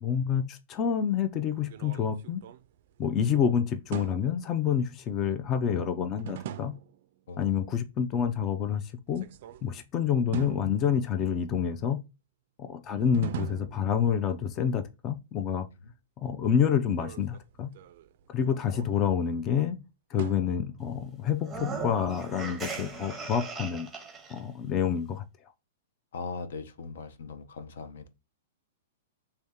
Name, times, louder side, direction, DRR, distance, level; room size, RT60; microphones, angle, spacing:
voice 1, 0.0-2.4 3.0-6.7 7.4-9.3 9.6-12.0 12.6-15.7 16.2-17.7 18.3-19.8 20.1-23.9 24.3-25.2, left 8 dB, 25° left, 0.3 m, -28 dB
sound 1, 1.5-3.3 3.9-4.5 6.2-7.0 9.1-9.8 10.3-11.4 13.0-14.5 16.8-19.3 20.2-21.1, right 11 dB, 55° right, 0.3 m, -42 dB
sound 2, 21.4-24.4, right 3 dB, 5° right, 0.8 m, -38 dB
voice 2, 26.1-28.1, left 4 dB, 75° left, 0.6 m, -40 dB
3.2 x 2.8 x 3.5 m
hypercardioid pair, 155°, 0 cm